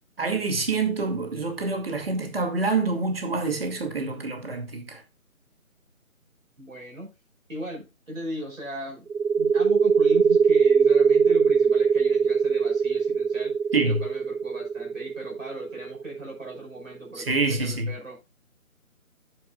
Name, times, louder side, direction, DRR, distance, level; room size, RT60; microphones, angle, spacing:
voice 1, 0.2-5.0 13.7-14.0 17.2-17.9, right 3 dB, 45° right, 2.3 m, -26 dB
voice 2, 6.6-7.1 7.5-9.1 9.4-13.5 13.9-18.2, equal, 65° right, 5.3 m, -38 dB
sound 1, 9.1-16.5, right 6 dB, 85° right, 0.6 m, -21 dB
11.5 x 9.1 x 2.3 m
figure-of-eight pair, 155°, 42 cm